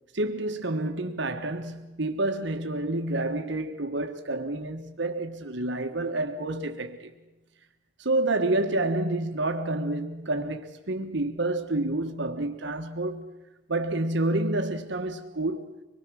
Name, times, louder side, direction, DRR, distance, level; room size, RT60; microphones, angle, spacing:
voice 1, 0.1-7.1 8.0-13.3 13.7-15.7, right 2 dB, 65° right, 1.3 m, -29 dB
24.5 x 21.0 x 6.3 m
head